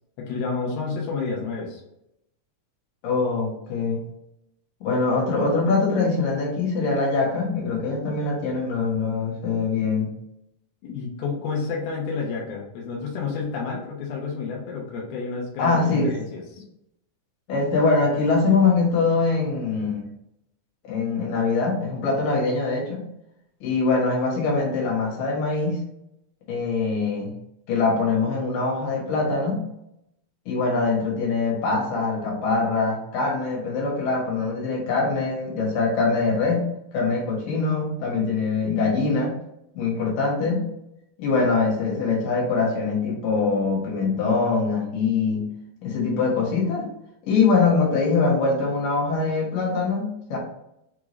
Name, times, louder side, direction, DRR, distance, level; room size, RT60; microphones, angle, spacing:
voice 1, 0.2-1.8 10.8-16.6, left 4 dB, 90° left, -2 dB, 2.8 m, -30 dB
voice 2, 3.0-4.0 4.8-10.1 15.6-16.1 17.5-20.1 20.8-23.1 23.6-25.8 26.5-27.3 27.7-29.6 30.5-39.4 39.7-40.7 41.2-45.5 45.8-46.9 47.2-50.4, left 4 dB, 70° left, -3 dB, 3.0 m, -23 dB
6.4 x 2.4 x 3.0 m, 0.82 s
omnidirectional pair, 4.1 m